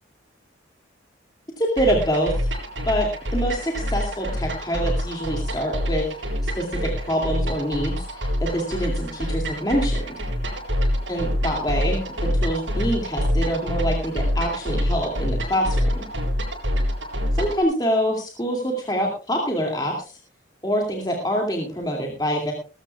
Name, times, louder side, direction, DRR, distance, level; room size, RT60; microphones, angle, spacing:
voice 1, 1.6-2.5 2.9-10.2 11.1-12.1 12.4-16.0 17.3-20.2 20.6-22.5, equal, 20° left, 0 dB, 2.5 m, -25 dB
sound 1, 1.8-17.6, equal, 90° right, 7.9 m, -26 dB
20.5 x 13.5 x 2.4 m, 0.35 s
head